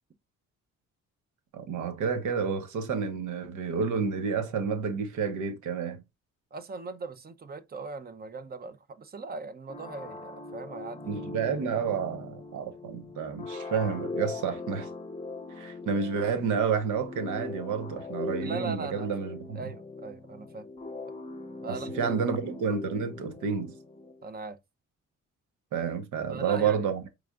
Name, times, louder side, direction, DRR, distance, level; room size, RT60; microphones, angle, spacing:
voice 1, 1.5-6.0 11.0-14.9 15.5-19.7 21.7-23.7 25.7-27.1, right 6 dB, 80° right, 1.0 m, -30 dB
voice 2, 6.5-11.1 18.4-19.1 19.5-20.7 21.6-22.3 24.2-24.6 26.3-26.8, right 4 dB, 30° right, 0.6 m, -39 dB
sound 1, 9.7-24.2, left 3 dB, 20° left, 0.7 m, -40 dB
4.8 x 3.4 x 2.4 m
cardioid pair, 90°, 30 cm